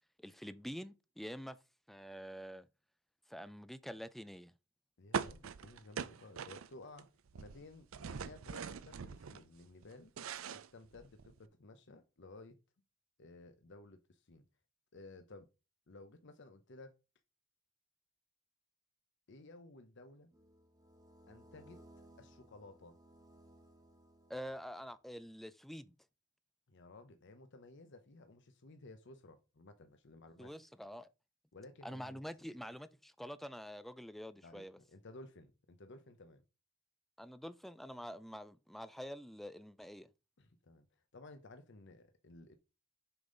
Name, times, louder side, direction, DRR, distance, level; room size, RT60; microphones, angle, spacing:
voice 1, 0.2-1.6 1.9-2.7 3.3-4.5 24.3-25.9 30.4-31.1 31.8-34.8 37.2-40.1, equal, ahead, 0.3 m, -47 dB
voice 2, 5.0-10.1 10.5-12.6 13.2-14.5 14.9-15.5 15.9-17.0 19.3-20.3 21.3-21.8 22.2-23.0 26.7-30.5 31.5-32.2 34.4-34.6 34.9-36.4 40.4-40.9 41.1-42.6, left 2 dB, 60° left, 0.8 m, -55 dB
sound 1, 5.1-7.0 7.3-9.4 9.8-11.4, right 6 dB, 75° right, 0.5 m, -42 dB
sound 2, 20.3-25.0, right 1 dB, 20° right, 1.5 m, -62 dB
6.9 x 5.4 x 3.8 m
head